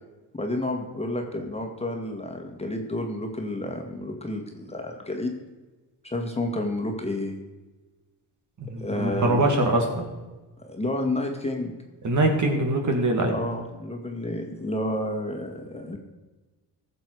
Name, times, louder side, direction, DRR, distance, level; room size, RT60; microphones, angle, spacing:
voice 1, 0.3-5.4 6.0-7.4 8.8-9.5 10.6-11.7 13.3-16.0, left 1 dB, 15° left, 2 dB, 1.8 m, -30 dB
voice 2, 8.6-10.0 12.0-13.4, right 2 dB, 45° right, 2 dB, 2.4 m, -23 dB
14.5 x 7.1 x 4.8 m, 1.2 s
cardioid pair, 85°, 40 cm